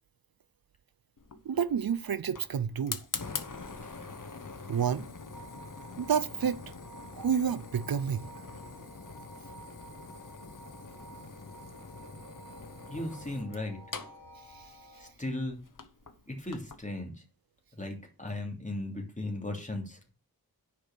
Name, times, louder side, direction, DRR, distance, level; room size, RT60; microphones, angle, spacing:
Fire, 1.2-16.8, left 4 dB, 55° left, 1.1 m, -44 dB
voice 1, 1.5-3.1 4.7-5.1 6.0-6.6 7.1-8.3 14.5-14.7, right 7 dB, 70° right, 0.5 m, -29 dB
sound 1, 5.3-15.1, right 2 dB, 75° left, 2.2 m, -52 dB
voice 2, 12.9-13.8 15.0-15.6 16.3-17.1 17.8-20.1, left 1 dB, 20° left, 2.9 m, -36 dB
10.0 x 5.1 x 6.8 m
wide cardioid pair, 55°, 37 cm